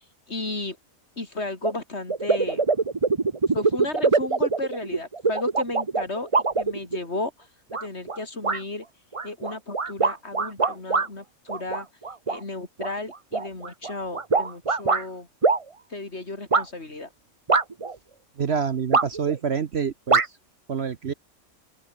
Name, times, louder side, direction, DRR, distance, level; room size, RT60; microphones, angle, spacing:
voice 1, 0.3-0.8 1.2-2.6 3.5-6.3 6.6-7.5 7.8-8.9 9.2-11.9 12.3-15.3 15.9-17.1, left 2 dB, 45° left, 3.9 m, -33 dB
sound 1, 1.6-1.7 2.1-7.2 7.7-8.2 8.4-8.6 9.1-11.1 11.5-12.4 12.8-15.0 15.4-15.6 16.5-16.6 17.5-17.9 18.9-19.4 20.1-20.3, right 4 dB, 25° right, 0.9 m, -23 dB
voice 2, 18.4-20.2 20.7-21.1, right 6 dB, 50° right, 1.1 m, -27 dB
open air
omnidirectional pair, 1.5 m